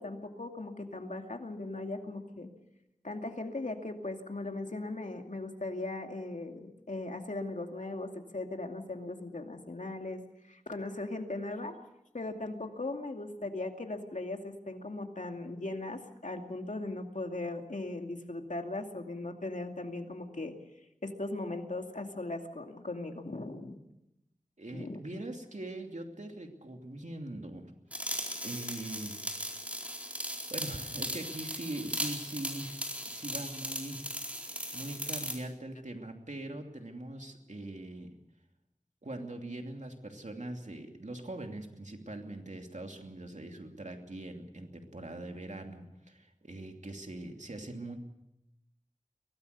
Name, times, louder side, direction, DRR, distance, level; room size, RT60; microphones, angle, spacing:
voice 1, 0.0-2.5 3.0-10.2 10.5-11.8 12.1-20.5 21.0-23.8 24.7-25.0, left 2 dB, 80° left, 4 dB, 2.4 m, -38 dB
voice 2, 24.6-27.7 28.4-30.1 30.5-32.8 33.1-34.0 34.4-38.1 39.0-48.0, right 1 dB, 70° right, 3 dB, 2.8 m, -42 dB
sound 1, 27.9-35.4, equal, 10° right, 4.4 m, -38 dB
23.5 x 18.0 x 6.8 m, 0.86 s
wide cardioid pair, 45°, 13 cm